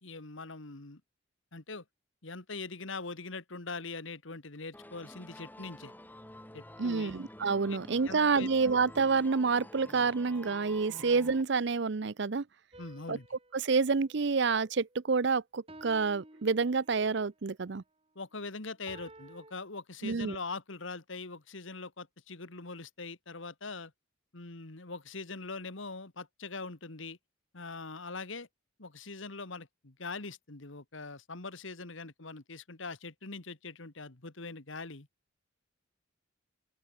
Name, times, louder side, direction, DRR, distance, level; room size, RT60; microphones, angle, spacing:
voice 1, 0.0-1.0 1.5-1.8 2.2-5.9 6.5-7.2 7.7-7.8 8.1-8.5 12.8-13.3 18.2-23.9 24.3-27.2 27.5-28.5 28.8-35.1, left 3 dB, 70° left, 1.8 m, -42 dB
sound 1, 4.7-11.4, left 1 dB, 10° left, 3.0 m, -49 dB
voice 2, 6.8-12.4 13.1-13.2 13.5-17.8 20.0-20.4, right 4 dB, 55° right, 0.6 m, -28 dB
sound 2, 12.7-15.1 15.7-17.2 18.9-19.5, right 1 dB, 25° right, 6.1 m, -54 dB
open air
head